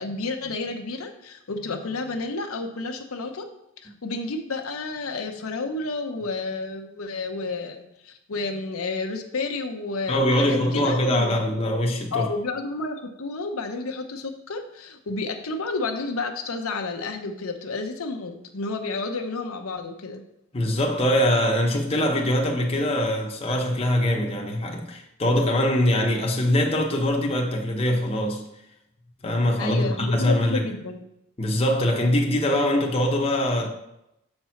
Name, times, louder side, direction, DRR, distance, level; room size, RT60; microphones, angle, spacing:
voice 1, 0.0-3.5 3.8-11.4 12.1-20.2 29.6-31.0, left 3 dB, 75° left, 0.8 m, -31 dB
voice 2, 10.1-12.3 20.5-28.4 29.2-30.7 31.4-33.7, left 1 dB, 25° left, 0.8 m, -23 dB
6.7 x 4.4 x 5.7 m
head